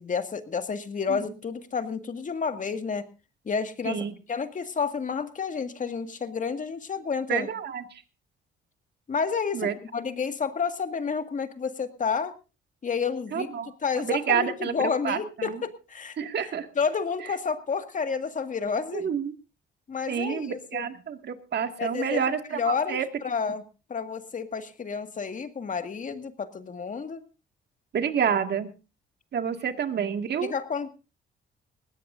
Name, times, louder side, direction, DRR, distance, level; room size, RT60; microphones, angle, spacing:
voice 1, 0.0-3.1 3.5-4.0 4.3-7.5 9.1-12.3 12.8-13.5 13.8-16.2 16.8-19.1 19.9-20.9 21.8-23.6 23.9-27.2 30.4-30.9, left 5 dB, 40° left, 8 dB, 1.9 m, -30 dB
voice 2, 7.3-7.8 9.5-9.7 13.3-13.7 14.0-15.6 16.2-16.7 18.9-19.3 20.1-23.1 27.9-28.7 29.3-30.5, right 7 dB, 55° right, 7 dB, 2.0 m, -28 dB
20.5 x 17.0 x 2.6 m, 0.31 s
cardioid pair, 90°, 20 cm